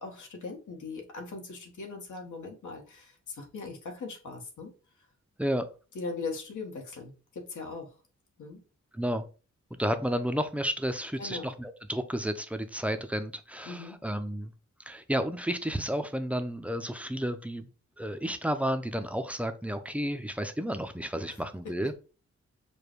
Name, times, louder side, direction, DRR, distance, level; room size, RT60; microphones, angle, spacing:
voice 1, 0.0-4.7 5.9-8.0 8.4-8.6 11.2-11.5 13.7-14.0 21.3-21.4, left 4 dB, 90° left, 2 dB, 1.3 m, -40 dB
voice 2, 9.8-14.5 14.9-17.7 18.0-21.9, equal, 5° right, 8 dB, 0.4 m, -31 dB
5.0 x 2.2 x 4.5 m, 0.34 s
wide cardioid pair, 140°, 29 cm